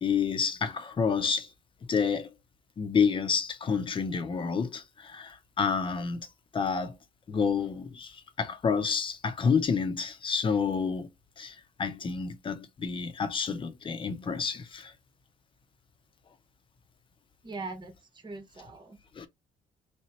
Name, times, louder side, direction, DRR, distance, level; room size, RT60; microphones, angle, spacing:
voice 1, 0.0-1.5 1.9-2.3 2.8-6.3 6.5-7.0 7.3-11.1 11.4-14.9 19.2-19.3, left 6 dB, 35° left, 0.8 m, -29 dB
voice 2, 17.4-19.0, right 3 dB, 30° right, 1.1 m, -41 dB
3.4 x 2.9 x 3.1 m
cardioid pair, 100°, 14 cm